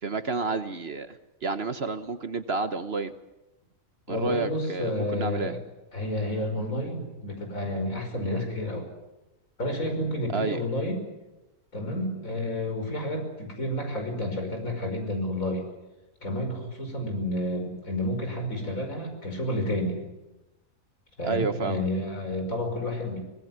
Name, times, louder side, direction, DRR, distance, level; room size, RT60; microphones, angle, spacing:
voice 1, 0.0-3.1 4.1-5.5 10.3-10.6 21.2-21.8, right 4 dB, 50° right, 10 dB, 1.2 m, -30 dB
voice 2, 4.1-5.6 5.9-8.9 9.6-11.0 11.7-15.6 16.2-20.0 21.2-23.2, left 1 dB, 65° left, 4 dB, 5.9 m, -30 dB
24.5 x 19.0 x 9.4 m, 0.99 s
omnidirectional pair, 1.5 m